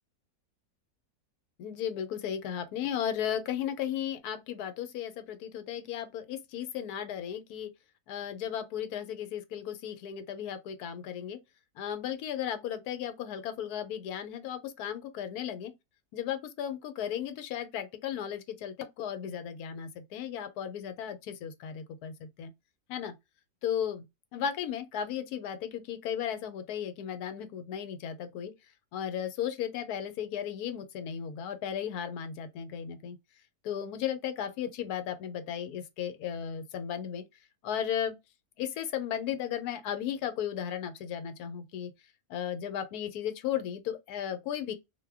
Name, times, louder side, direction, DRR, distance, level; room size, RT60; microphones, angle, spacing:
voice 1, 1.6-7.7 8.1-11.4 11.7-15.7 16.1-22.5 22.9-23.1 23.6-24.0 24.3-28.5 28.9-33.2 33.6-37.2 37.6-38.2 38.6-41.9 42.3-44.7, left 9 dB, 75° left, 1.1 m, -35 dB
2.5 x 2.1 x 3.4 m
omnidirectional pair, 1.7 m